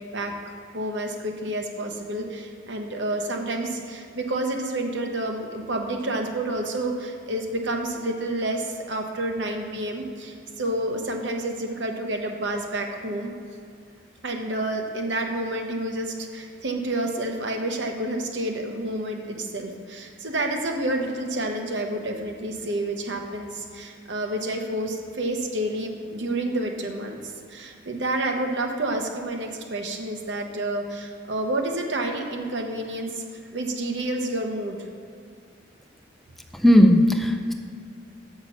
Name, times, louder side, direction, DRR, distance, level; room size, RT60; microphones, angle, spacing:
voice 1, 0.1-13.3 14.2-33.2 33.5-34.8, right 1 dB, 70° right, 2 dB, 1.0 m, -29 dB
voice 2, 36.5-37.5, equal, ahead, 3 dB, 0.5 m, -16 dB
7.1 x 5.9 x 5.7 m, 2.4 s
head